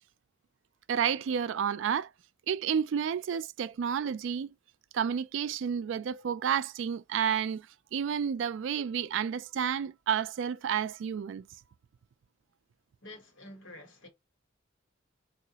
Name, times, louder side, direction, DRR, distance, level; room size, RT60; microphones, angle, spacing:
voice 1, 0.9-2.1 2.5-4.5 4.9-7.7 7.9-11.4, right 8 dB, 70° right, 0.3 m, -30 dB
voice 2, 13.0-14.1, left 1 dB, 75° left, 1.2 m, -48 dB
3.8 x 2.4 x 2.8 m
head